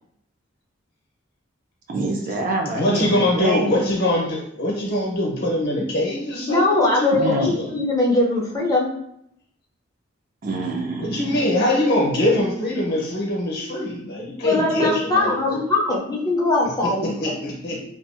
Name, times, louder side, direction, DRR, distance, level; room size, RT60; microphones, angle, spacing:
voice 1, 1.9-3.9 7.1-7.7 10.4-11.4, right 2 dB, 45° right, 1 dB, 0.4 m, -26 dB
voice 2, 2.7-7.7 11.0-15.6 17.2-17.9, left 1 dB, 55° left, -2 dB, 0.8 m, -23 dB
voice 3, 6.4-9.0 14.4-17.3, left 2 dB, 20° left, -3 dB, 0.5 m, -21 dB
2.6 x 2.3 x 2.5 m, 0.73 s
head